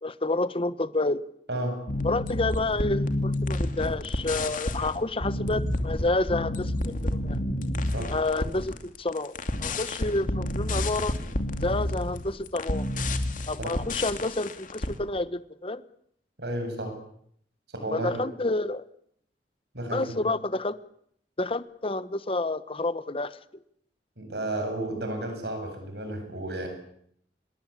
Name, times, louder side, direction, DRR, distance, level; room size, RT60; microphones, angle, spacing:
voice 1, 0.0-1.2 2.0-6.9 7.2-7.4 8.1-9.3 9.6-11.2 11.6-12.9 13.5-15.8 17.9-18.8 19.9-20.8 21.4-23.4, left 2 dB, 30° left, 14 dB, 1.2 m, -29 dB
voice 2, 1.5-1.8 7.9-8.1 13.6-13.8 16.4-16.9 17.7-18.1 19.7-20.1 24.2-26.7, right 1 dB, 70° right, 5 dB, 7.9 m, -32 dB
sound 1, 1.9-14.9, left 1 dB, 50° left, 2.7 m, -30 dB
27.0 x 22.0 x 8.5 m, 0.69 s
head